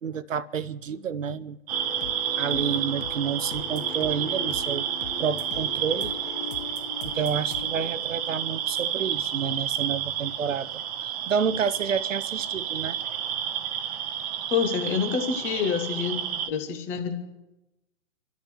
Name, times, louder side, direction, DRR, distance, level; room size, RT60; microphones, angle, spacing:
voice 1, 0.0-1.6 2.4-4.9 5.2-6.1 7.0-13.0, right 7 dB, 75° right, 0.7 m, -29 dB
sound 1, 1.7-9.0, left 8 dB, 40° left, 0.8 m, -40 dB
sound 2, 1.7-16.5, right 9 dB, 30° right, 0.8 m, -30 dB
voice 2, 14.5-16.2 16.5-17.1, left 6 dB, 5° left, 0.4 m, -27 dB
27.5 x 13.0 x 3.1 m
figure-of-eight pair, 120°, 39 cm